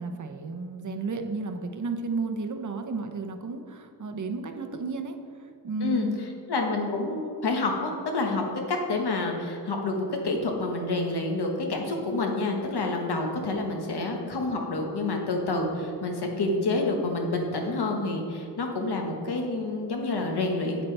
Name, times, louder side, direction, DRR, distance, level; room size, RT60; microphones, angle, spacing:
voice 1, 0.0-6.2, right 3 dB, 45° right, 5 dB, 0.7 m, -33 dB
voice 2, 6.5-20.8, left 2 dB, 65° left, 2 dB, 1.3 m, -28 dB
9.2 x 8.4 x 3.3 m, 2.5 s
wide cardioid pair, 155°, 42 cm